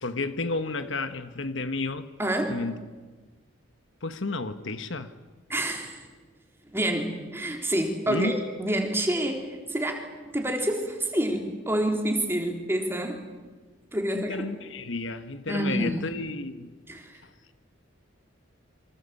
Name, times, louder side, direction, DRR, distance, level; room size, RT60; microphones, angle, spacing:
voice 1, 0.0-2.1 2.5-2.8 4.0-5.1 8.1-8.4 14.1-16.7, left 3 dB, 65° left, 1.3 m, -31 dB
voice 2, 2.2-2.6 5.5-6.0 6.7-8.3 8.6-10.0 10.3-13.2 13.9-14.4 15.5-16.1 16.9-17.2, right 1 dB, 10° right, 3.8 m, -28 dB
27.5 x 25.0 x 8.4 m
head